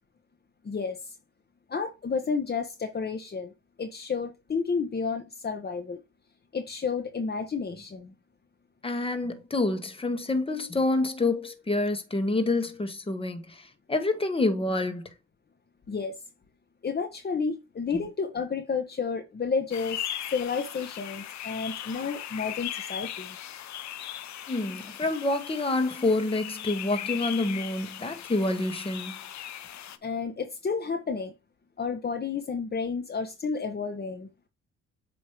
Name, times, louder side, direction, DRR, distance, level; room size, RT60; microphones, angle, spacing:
voice 1, 0.6-1.0 1.7-3.5 3.8-6.0 6.5-8.1 15.9-16.2 16.8-20.0 20.3-23.4 30.0-31.3 31.8-34.3, left 5 dB, 35° left, 1.1 m, -31 dB
voice 2, 8.8-15.1 17.9-18.0 24.5-29.2, left 2 dB, 20° left, 1.3 m, -28 dB
sound 1, 19.7-30.0, left 11 dB, 65° left, 0.8 m, -38 dB
8.3 x 3.1 x 4.6 m
cardioid pair, 90°, 30 cm